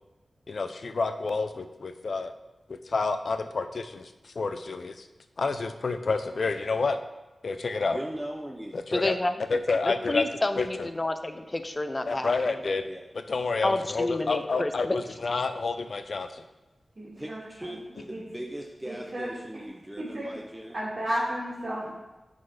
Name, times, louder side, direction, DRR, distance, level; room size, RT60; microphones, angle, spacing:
voice 1, 0.5-2.3 2.7-5.1 5.4-7.0 7.4-8.0 8.7-9.1 9.5-10.2 10.6-10.9 12.1-12.8 13.1-16.4, left 3 dB, 65° left, 9 dB, 0.6 m, -29 dB
voice 2, 7.9-8.8 12.9-13.0 17.2-20.8, right 1 dB, 10° right, 0 dB, 0.8 m, -39 dB
voice 3, 8.9-9.3 9.8-12.6 13.6-15.0, left 2 dB, 30° left, 8 dB, 0.7 m, -29 dB
voice 4, 16.9-18.2 18.8-19.3 19.5-19.6 20.0-20.3 20.7-21.9, equal, 55° right, -9 dB, 2.4 m, -33 dB
9.7 x 4.2 x 5.0 m, 1.1 s
wide cardioid pair, 65°, 0 cm